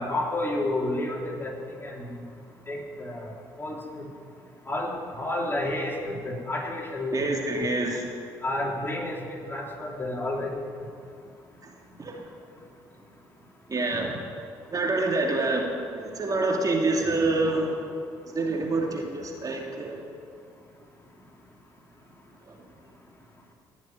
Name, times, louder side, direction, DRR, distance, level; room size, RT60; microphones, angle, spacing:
voice 1, 0.0-1.5 1.8-2.2 2.7-3.2 3.6-4.1 4.7-7.2 7.6-7.7 8.4-10.6, left 1 dB, 20° left, -2 dB, 3.9 m, -30 dB
voice 2, 7.1-8.1 11.6-11.7 12.0-12.2 13.7-14.2 14.7-17.8 18.3-20.1 22.5-22.6, right 2 dB, 40° right, 0 dB, 2.8 m, -27 dB
18.0 x 7.3 x 9.5 m, 2.3 s
hypercardioid pair, 55°, 10 cm